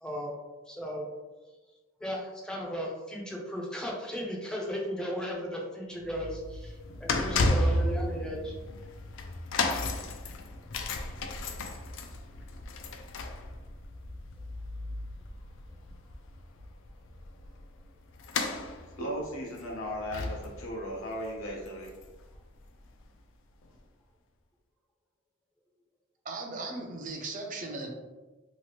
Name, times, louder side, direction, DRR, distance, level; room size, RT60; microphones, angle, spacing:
voice 1, 0.0-0.3 0.7-1.1 2.0-8.6, equal, 5° left, -2 dB, 0.5 m, -36 dB
sound 1, 6.0-22.4 22.6-22.9 23.7-23.8, left 2 dB, 65° left, 0.4 m, -34 dB
voice 2, 19.0-21.9, equal, 80° left, -2 dB, 0.8 m, -36 dB
voice 3, 26.2-27.9, right 3 dB, 40° right, 1 dB, 0.5 m, -37 dB
2.9 x 2.5 x 2.9 m, 1.2 s
head